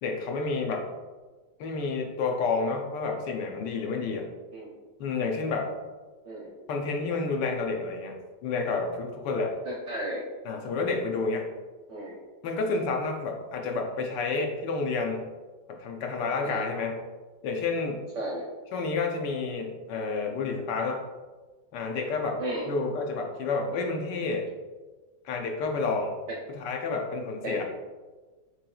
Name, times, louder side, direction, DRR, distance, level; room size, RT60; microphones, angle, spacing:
voice 1, 0.0-0.9 1.6-4.3 5.0-5.7 6.7-9.6 10.4-11.5 12.4-15.3 15.7-17.0 17.4-18.0 18.7-21.0 21.7-22.4 22.7-24.5 25.2-26.2 26.5-27.6, left 4 dB, 80° left, 2 dB, 1.3 m, -30 dB
voice 2, 9.6-10.2 11.9-12.2 16.4-16.7 18.1-18.5 22.4-22.7 26.3-26.4 27.4-27.6, right 1 dB, 60° right, -2 dB, 0.8 m, -34 dB
6.5 x 3.2 x 2.3 m, 1.3 s
omnidirectional pair, 1.9 m